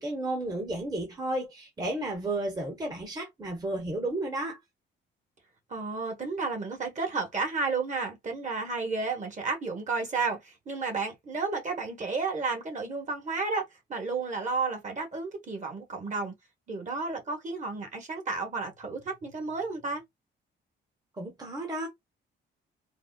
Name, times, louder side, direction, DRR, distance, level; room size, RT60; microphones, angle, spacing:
voice 1, 0.0-4.6 21.2-21.9, right 1 dB, 20° right, 1.0 m, -32 dB
voice 2, 5.7-16.3 16.7-20.0, right 4 dB, 40° right, 1.3 m, -32 dB
4.1 x 2.0 x 2.3 m
cardioid pair, 90°, 20 cm